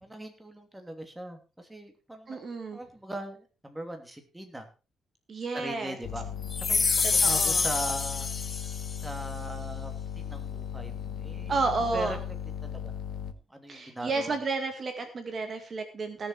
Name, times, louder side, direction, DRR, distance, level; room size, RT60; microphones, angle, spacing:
voice 1, 0.0-2.4 2.7-4.7 5.5-6.2 6.6-8.3 9.0-9.9 10.2-12.2 12.6-14.4, right 1 dB, 10° right, 5 dB, 2.9 m, -40 dB
voice 2, 2.3-2.8 5.3-6.0 7.0-7.7 11.5-12.2 13.7-16.3, right 3 dB, 40° right, 6 dB, 2.1 m, -31 dB
sound 1, 6.0-13.3, left 8 dB, 70° left, 1.4 m, -37 dB
sound 2, 6.5-9.0, left 4 dB, 30° left, 0.5 m, -27 dB
18.0 x 7.0 x 4.8 m, 0.33 s
cardioid pair, 115°, 0 cm